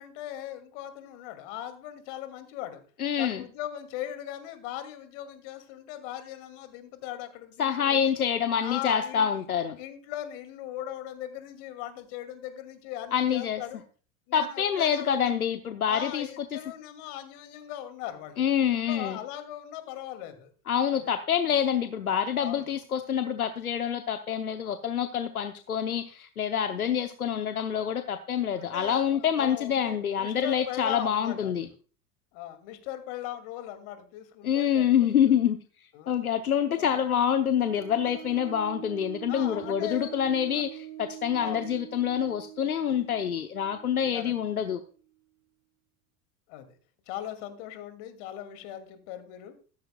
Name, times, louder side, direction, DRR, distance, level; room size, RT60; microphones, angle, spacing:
voice 1, 0.0-2.8 3.2-8.1 8.6-9.3 9.8-13.8 14.3-15.3 15.8-18.4 18.9-20.5 20.9-21.1 22.4-22.7 28.5-31.5 32.3-34.9 35.2-35.4 35.9-36.2 36.7-37.0 38.1-38.6 39.3-40.1 40.5-40.6 41.3-41.7 44.1-44.3 46.5-46.7 47.1-49.6, left 12 dB, 55° left, 9 dB, 2.4 m, -39 dB
voice 2, 3.0-3.4 7.6-9.8 13.1-13.6 14.3-16.6 18.4-19.2 20.7-31.7 34.4-35.6 36.1-44.8, left 8 dB, 85° left, 9 dB, 0.9 m, -26 dB
sound 1, 37.5-44.9, right 14 dB, 75° right, 5.2 m, -44 dB
14.5 x 13.5 x 2.3 m, 0.39 s
figure-of-eight pair, 80°, 43 cm